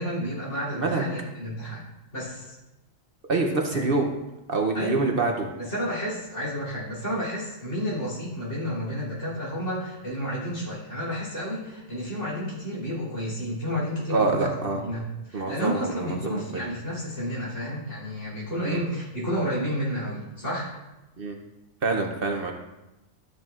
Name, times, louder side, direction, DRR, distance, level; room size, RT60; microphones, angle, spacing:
voice 1, 0.0-1.8 2.1-2.5 3.7-3.9 4.7-5.0 5.6-20.7, equal, 65° left, -6 dB, 3.5 m, -31 dB
voice 2, 3.3-4.1 4.5-5.5 14.1-14.8 15.3-16.6 18.6-18.8 21.2-21.3 21.8-22.5, right 3 dB, 50° right, 2 dB, 0.9 m, -26 dB
13.0 x 7.4 x 2.4 m, 1.0 s
omnidirectional pair, 1.3 m